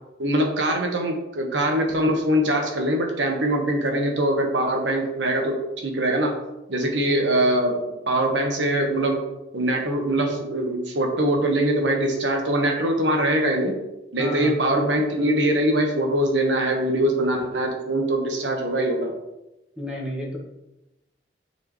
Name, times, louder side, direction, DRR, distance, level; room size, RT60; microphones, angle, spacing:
voice 1, 0.2-6.4 6.7-9.2 9.5-13.8 14.1-19.1, right 1 dB, 80° right, 2 dB, 1.3 m, -23 dB
voice 2, 14.2-14.5 19.8-20.4, equal, 5° right, -3 dB, 1.5 m, -31 dB
8.4 x 4.7 x 3.1 m, 0.96 s
head